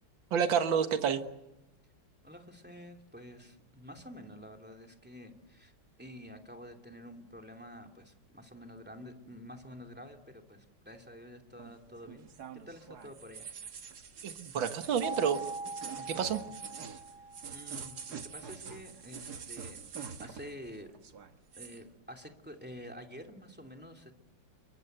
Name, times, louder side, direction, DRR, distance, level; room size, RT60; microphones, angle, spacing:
voice 1, 0.3-1.2 14.2-15.4 16.0-16.4, right 7 dB, 70° right, 8 dB, 2.2 m, -29 dB
voice 2, 2.2-5.7 6.0-12.3 12.7-13.5 17.5-20.9 21.6-24.1, equal, 5° right, 5 dB, 2.7 m, -49 dB
sound 1, 11.6-20.7 20.9-21.8, right 6 dB, 55° right, 1.8 m, -45 dB
sound 2, 15.0-18.0, right 3 dB, 30° right, 1.5 m, -42 dB
28.5 x 24.0 x 8.1 m, 0.93 s
omnidirectional pair, 2.2 m